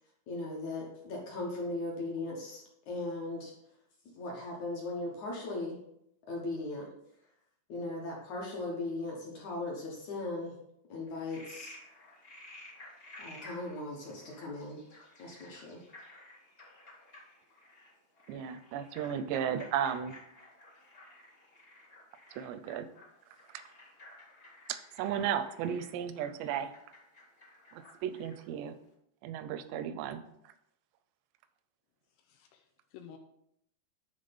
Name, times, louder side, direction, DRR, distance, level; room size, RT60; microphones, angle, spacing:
voice 1, 0.3-3.5 4.2-5.8 6.3-6.9 7.7-10.5 10.9-11.8 13.2-14.8 15.2-15.8, left 2 dB, 65° left, -2 dB, 1.8 m, -38 dB
Frog, 11.1-28.5, left 1 dB, 45° left, 1.1 m, -54 dB
voice 2, 18.3-20.2 22.3-22.9 24.7-26.7 27.7-28.8 29.2-30.2, right 9 dB, 85° right, 12 dB, 2.5 m, -34 dB
voice 3, 32.1-33.2, left 8 dB, 80° left, 4 dB, 2.5 m, -53 dB
10.5 x 3.7 x 5.3 m, 0.76 s
omnidirectional pair, 5.3 m